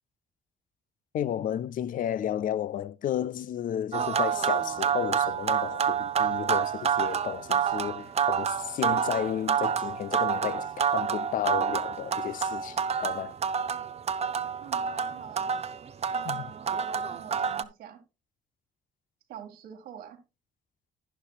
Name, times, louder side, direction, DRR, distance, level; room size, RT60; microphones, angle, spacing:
voice 1, 1.1-13.3 16.2-16.5, left 10 dB, 60° left, 0.4 m, -32 dB
sound 1, 3.9-17.6, right 7 dB, 40° right, 0.6 m, -28 dB
voice 2, 14.6-15.5 16.1-18.0 19.3-20.2, right 9 dB, 85° right, 2.0 m, -46 dB
11.5 x 9.9 x 2.4 m
cardioid pair, 85°, 16 cm